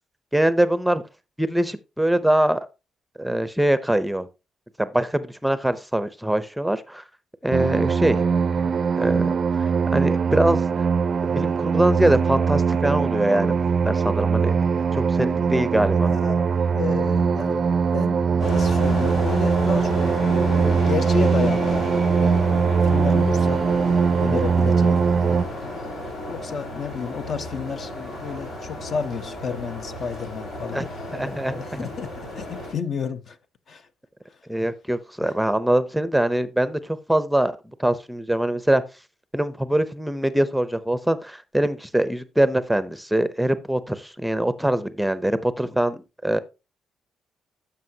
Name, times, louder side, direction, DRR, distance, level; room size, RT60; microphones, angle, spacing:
voice 1, 0.3-1.0 1.4-2.7 3.2-4.3 4.8-7.0 7.4-8.3 9.0-10.9 11.2-13.6 13.8-16.1 30.7-31.9 34.5-37.5 37.8-38.8 39.3-46.4, right 1 dB, ahead, 0.6 m, -23 dB
sound 1, 7.5-25.4, right 5 dB, 45° right, 0.4 m, -21 dB
voice 2, 15.9-16.5 16.7-26.0 26.3-33.4 33.7-33.9 35.2-35.3, left 5 dB, 55° left, 0.8 m, -32 dB
sound 2, 18.4-32.7, left 1 dB, 80° left, 4.6 m, -32 dB
12.5 x 5.8 x 2.8 m
cardioid pair, 90°, 0 cm